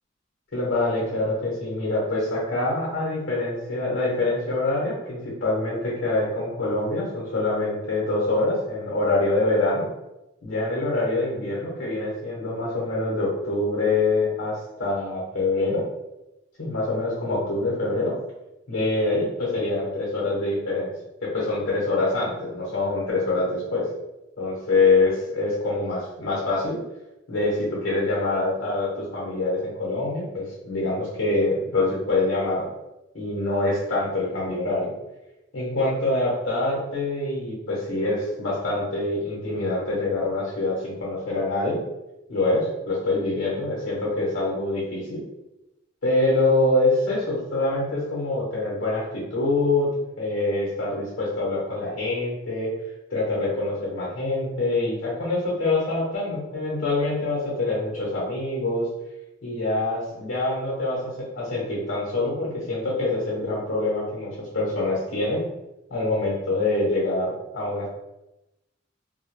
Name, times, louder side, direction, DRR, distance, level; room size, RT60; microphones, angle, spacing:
voice 1, 0.5-9.8 10.4-15.8 16.6-18.1 18.7-20.9 21.2-23.9 24.4-26.8 27.3-32.7 33.1-34.9 35.5-41.8 42.3-45.2 46.0-49.9 50.2-52.7 53.1-58.9 59.4-65.4 65.9-67.9, left 2 dB, 80° left, -5 dB, 0.9 m, -25 dB
2.2 x 2.1 x 2.9 m, 0.94 s
head